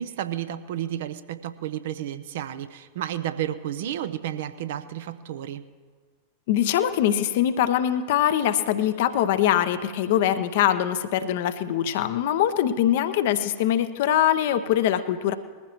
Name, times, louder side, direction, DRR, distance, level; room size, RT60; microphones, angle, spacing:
voice 1, 0.0-5.7, right 11 dB, 55° right, 12 dB, 0.6 m, -32 dB
voice 2, 6.5-15.3, left 11 dB, 55° left, 11 dB, 0.7 m, -23 dB
21.0 x 15.0 x 3.0 m, 1.5 s
figure-of-eight pair, 90°, 0 cm